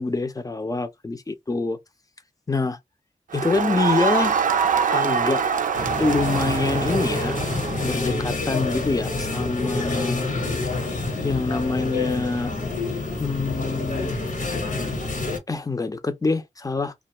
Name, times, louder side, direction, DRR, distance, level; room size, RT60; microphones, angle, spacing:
voice 1, 0.0-1.8 2.5-2.8 3.3-4.4 4.9-5.4 6.0-7.4 7.8-10.3 11.2-12.5 13.2-14.1 15.5-16.9, left 3 dB, 25° left, 0.6 m, -25 dB
Crowd, 3.3-8.1, right 6 dB, 80° right, 0.4 m, -24 dB
sound 1, 5.7-15.4, left 3 dB, 75° left, 1.3 m, -27 dB
2.5 x 2.4 x 3.0 m
wide cardioid pair, 85°, 13 cm